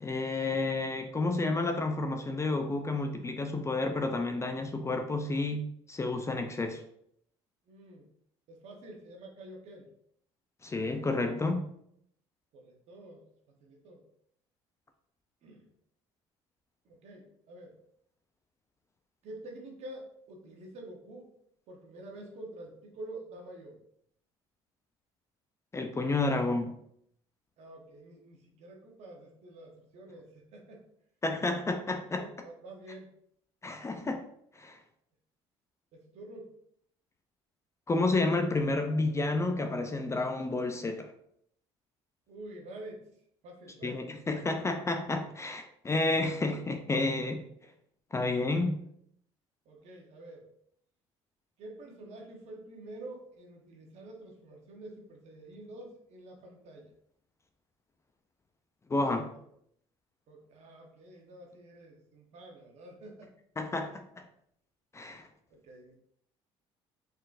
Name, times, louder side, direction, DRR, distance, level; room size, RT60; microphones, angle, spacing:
voice 1, 0.0-6.8 10.6-11.6 25.7-26.7 31.2-32.2 33.6-34.2 34.6-34.8 37.9-41.1 43.8-47.4 48.1-48.8 58.9-59.3 63.6-64.0 64.9-65.3, left 2 dB, 25° left, 5 dB, 0.5 m, -30 dB
voice 2, 7.7-8.1 8.5-9.9 12.5-13.2 13.6-14.0 15.4-15.6 16.8-17.8 19.2-21.3 21.7-23.8 26.1-26.3 27.6-30.9 32.0-33.1 35.9-36.6 42.3-43.1 43.4-44.0 49.6-50.4 51.6-56.9 60.3-63.3 65.5-66.0, right 1 dB, 65° right, 1 dB, 1.2 m, -48 dB
4.1 x 3.8 x 2.6 m, 0.70 s
supercardioid pair, 75°, 12 cm